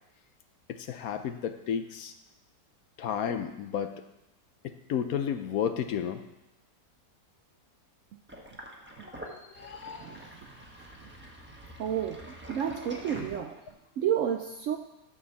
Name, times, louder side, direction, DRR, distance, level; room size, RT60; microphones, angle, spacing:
voice 1, 0.7-2.1 3.0-4.0 4.6-6.2 9.0-10.3, left 8 dB, 65° left, 9 dB, 1.0 m, -33 dB
Sink (filling or washing), 8.3-13.9, equal, 10° right, 1.0 m, -45 dB
voice 2, 9.0-9.6 9.9-11.1 11.8-13.6 14.0-14.8, right 9 dB, 70° right, 6 dB, 0.7 m, -32 dB
12.5 x 4.7 x 7.0 m, 0.91 s
omnidirectional pair, 1.8 m